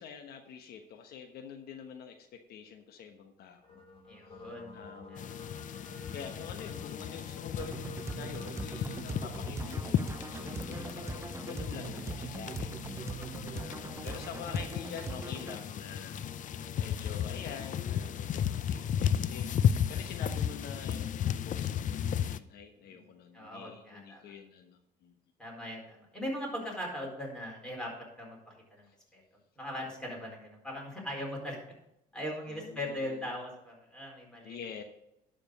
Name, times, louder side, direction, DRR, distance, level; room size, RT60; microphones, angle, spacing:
voice 1, 0.0-3.8 4.3-4.4 4.7-5.5 6.1-13.2 13.5-16.2 16.8-19.4 19.9-21.0 21.4-25.1 32.5-33.3 34.4-34.8, left 7 dB, 70° left, 5 dB, 1.2 m, -46 dB
sound 1, 3.6-19.9, left 3 dB, 30° left, 3.2 m, -51 dB
voice 2, 4.1-4.8 5.1-5.3 10.4-10.9 14.0-14.1 22.9-23.0 23.3-24.2 25.4-29.2 29.6-31.6 32.1-34.6, equal, 5° left, -2 dB, 4.5 m, -40 dB
sound 2, 5.2-22.4, left 9 dB, 50° left, 0.6 m, -34 dB
sound 3, 7.6-15.6, right 4 dB, 15° right, 0.6 m, -41 dB
12.0 x 5.2 x 6.6 m, 0.81 s
cardioid pair, 110°, 17 cm